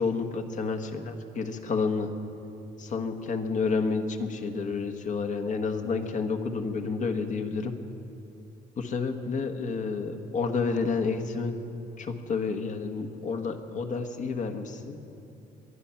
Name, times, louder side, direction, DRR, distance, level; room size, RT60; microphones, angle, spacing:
voice 1, 0.0-2.1 2.8-7.7 8.8-11.6 12.0-15.0, left 4 dB, 50° left, 6 dB, 1.4 m, -30 dB
23.0 x 10.0 x 5.8 m, 2.7 s
cardioid pair, 110°, 17 cm